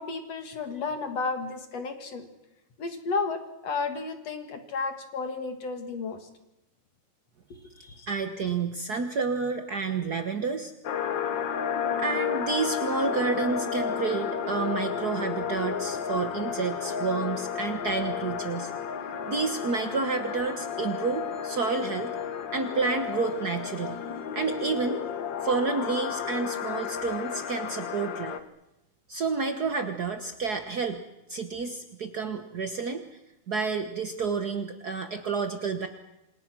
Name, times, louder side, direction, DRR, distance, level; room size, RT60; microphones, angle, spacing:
voice 1, 0.0-2.3 2.8-6.3 7.8-8.1, left 4 dB, 55° left, 7 dB, 2.9 m, -33 dB
voice 2, 8.1-10.7 12.0-18.7 19.3-22.1 22.5-24.0 24.3-25.0 25.4-28.4 29.1-31.0 31.3-33.0 33.5-35.9, right 4 dB, 70° right, 7 dB, 0.9 m, -30 dB
sound 1, 10.8-28.4, left 7 dB, 70° left, 1.0 m, -32 dB
28.0 x 27.0 x 6.2 m, 0.93 s
omnidirectional pair, 3.8 m